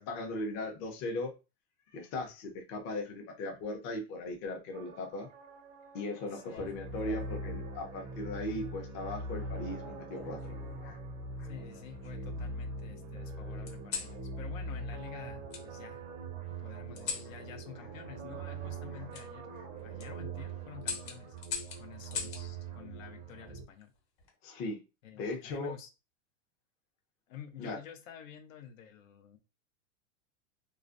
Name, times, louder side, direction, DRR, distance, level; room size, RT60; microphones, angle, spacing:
voice 1, 0.0-1.3 1.9-5.3 5.9-11.0 11.4-11.5 18.9-19.0 19.5-19.6 24.4-24.8 25.2-25.7 27.6-27.8, left 2 dB, 35° left, 0.7 m, -38 dB
sound 1, 4.7-21.4, right 6 dB, 80° right, 0.7 m, -52 dB
voice 2, 6.3-6.7 11.4-16.0 16.6-19.5 19.8-21.4 21.8-23.9 25.0-25.9 27.3-29.4, left 8 dB, 85° left, 0.7 m, -49 dB
sound 2, 6.3-7.4 8.4-8.9 10.1-10.9 11.5-12.4 13.7-14.2 15.5-15.6 16.9-17.3 19.1-19.3 19.8-20.1 20.8-22.4 23.9-24.3, left 6 dB, 50° left, 1.0 m, -41 dB
sound 3, 6.6-23.6, right 2 dB, 20° right, 0.5 m, -42 dB
2.4 x 2.1 x 2.5 m
supercardioid pair, 140°, 38 cm